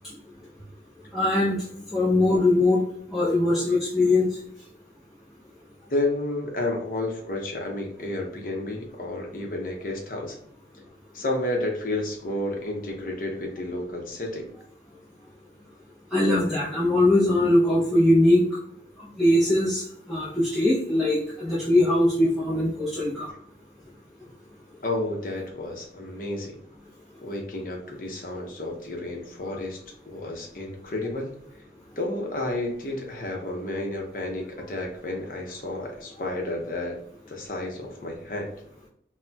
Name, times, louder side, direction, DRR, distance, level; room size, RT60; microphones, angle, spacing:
voice 1, 1.1-1.6 1.9-2.8 3.1-4.3 16.1-18.4 19.2-19.8 20.1-23.3, left 1 dB, ahead, -8 dB, 0.5 m, -21 dB
voice 2, 5.9-10.4 11.1-14.5 24.8-26.5 27.2-31.3 32.0-37.0 37.3-38.5, left 2 dB, 50° left, 1 dB, 0.7 m, -31 dB
4.0 x 2.1 x 2.2 m, 0.71 s
head